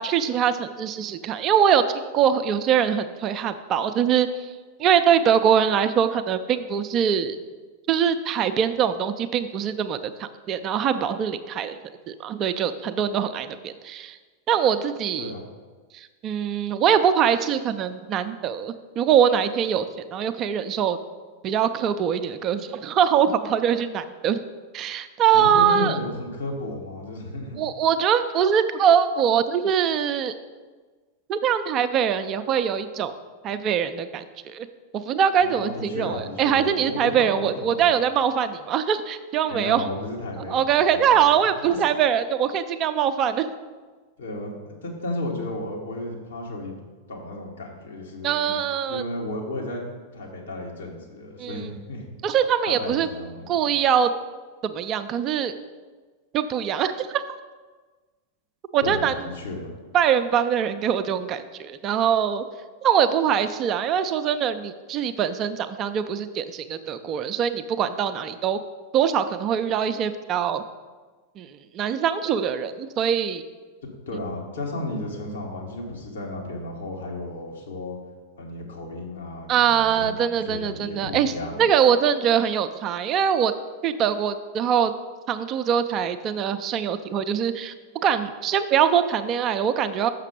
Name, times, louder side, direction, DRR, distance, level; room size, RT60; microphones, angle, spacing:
voice 1, 0.0-4.5 4.8-7.4 7.9-11.8 12.1-14.2 14.5-15.3 15.9-21.0 21.4-24.4 24.7-26.0 27.6-30.3 31.3-33.1 33.4-34.7 34.9-39.9 40.5-43.5 48.2-49.0 51.4-51.7 52.2-53.1 53.5-54.1 54.6-55.5 56.3-57.2 58.7-59.1 59.9-62.5 62.8-68.6 68.9-70.6 71.4-73.4 79.5-81.3 81.6-83.5 83.8-84.9 85.3-87.7 88.0-90.1, right 8 dB, 35° right, 10 dB, 0.4 m, -23 dB
voice 2, 25.3-27.6 35.4-37.9 39.5-41.8 44.2-46.7 47.1-48.6 48.9-49.8 50.1-52.1 52.6-53.5 58.8-59.7 74.1-78.0 78.4-81.6, left 1 dB, 65° left, -1 dB, 1.7 m, -33 dB
6.5 x 6.0 x 5.1 m, 1.3 s
figure-of-eight pair, 90°, 0 cm